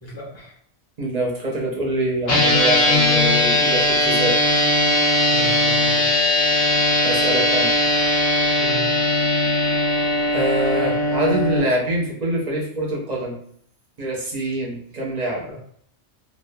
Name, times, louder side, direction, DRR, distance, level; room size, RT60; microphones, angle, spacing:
voice 1, 0.0-0.5 5.3-6.1 8.6-8.9, right 1 dB, 15° left, -6 dB, 1.0 m, -35 dB
voice 2, 1.0-4.4 7.0-7.7 10.3-13.4 14.0-15.4, right 1 dB, 40° right, -3 dB, 0.7 m, -25 dB
sound 1, 2.3-11.6, left 1 dB, 55° left, 1.1 m, -19 dB
2.9 x 2.2 x 2.2 m, 0.65 s
omnidirectional pair, 1.2 m